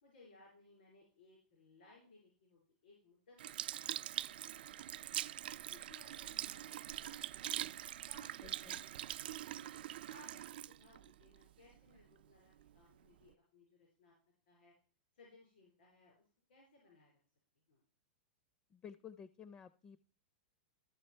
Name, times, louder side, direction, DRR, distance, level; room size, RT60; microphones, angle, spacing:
voice 1, 0.0-4.1 4.4-5.0 5.7-7.7 8.1-8.8 9.3-9.6 10.1-14.1 14.5-14.7 15.1-16.2 16.5-17.1 17.7-17.8, left 3 dB, 80° left, -2 dB, 4.6 m, -64 dB
Sink (filling or washing) / Liquid, 3.4-12.0 12.6-12.7, right 12 dB, 75° right, 0.4 m, -43 dB
voice 2, 8.4-8.8 18.7-20.0, left 7 dB, 25° left, 16 dB, 0.5 m, -53 dB
13.5 x 6.1 x 4.4 m, 0.41 s
hypercardioid pair, 135°, 5 cm